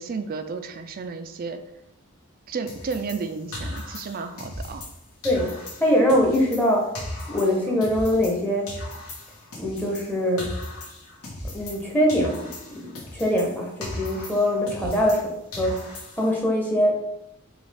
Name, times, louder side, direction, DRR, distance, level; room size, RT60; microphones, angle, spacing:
voice 1, 0.0-1.6 2.5-4.8 14.8-15.1, right 4 dB, 40° right, 8 dB, 0.3 m, -32 dB
sound 1, 2.7-5.0 5.2-8.4 8.7-11.8 12.1-15.2 15.5-16.4, left 1 dB, 80° left, 1.2 m, -37 dB
voice 2, 5.2-6.9 7.3-8.8 9.6-10.5 11.5-12.9 13.1-15.3 15.6-15.8 16.2-17.0, equal, 10° left, -1 dB, 0.7 m, -23 dB
5.1 x 2.4 x 3.3 m, 0.82 s
head